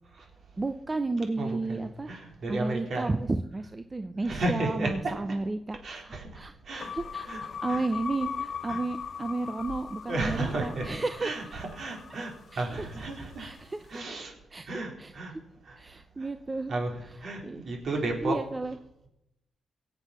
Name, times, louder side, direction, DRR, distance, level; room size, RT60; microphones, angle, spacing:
voice 1, 0.6-2.1 2.5-7.3 7.6-11.4 12.5-12.6 13.4-13.8 14.5-15.1 15.8-16.7 17.4-17.6 18.2-18.7, right 2 dB, 20° right, 9 dB, 0.6 m, -32 dB
voice 2, 1.4-3.1 4.2-5.4 5.8-6.4 6.7-6.9 7.2-7.8 8.7-8.8 10.1-13.5 13.9-14.3 14.7-15.3 15.7-15.8 16.2-16.3 16.7-18.4, right 2 dB, 50° right, 1 dB, 3.7 m, -33 dB
sound 1, 6.8-13.2, left 7 dB, 50° left, 0.6 m, -39 dB
23.0 x 8.2 x 5.6 m, 0.85 s
cardioid pair, 135°, 0 cm